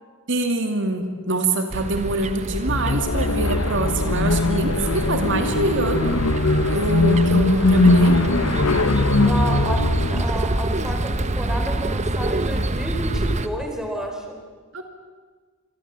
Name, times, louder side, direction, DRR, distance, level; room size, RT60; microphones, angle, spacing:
voice 1, 0.3-6.1 6.7-8.1 14.7-14.8, right 2 dB, 60° right, 5 dB, 2.6 m, -24 dB
sound 1, 1.7-13.5, right 1 dB, 35° right, 1.3 m, -26 dB
sound 2, 2.6-10.3, left 2 dB, 75° left, 1.2 m, -20 dB
voice 2, 9.2-9.8 10.1-14.4, right 1 dB, 5° right, 2 dB, 4.3 m, -30 dB
26.5 x 23.5 x 7.7 m, 1.5 s
head